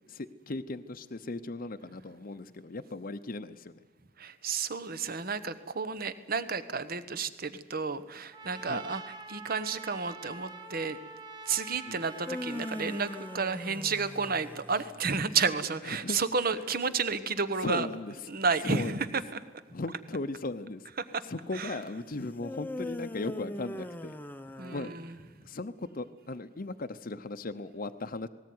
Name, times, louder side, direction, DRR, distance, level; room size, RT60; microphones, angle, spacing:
voice 1, 0.1-3.8 8.6-8.9 11.5-12.0 14.7-14.8 15.8-16.2 16.5-16.6 17.6-18.3 18.6-19.2 19.7-20.9 21.2-24.2 24.7-25.2 25.4-28.3, left 2 dB, 45° left, 9 dB, 0.8 m, -37 dB
voice 2, 4.2-9.0 9.3-11.0 11.5-17.9 18.3-19.0 21.6-21.7 24.6-25.1, right 5 dB, 50° right, 13 dB, 1.1 m, -31 dB
Trumpet, 8.3-13.6, right 3 dB, 20° right, 1.7 m, -46 dB
sound 1, 12.0-15.2 22.4-25.3, left 1 dB, 10° left, 0.8 m, -40 dB
19.0 x 18.5 x 9.5 m, 1.3 s
head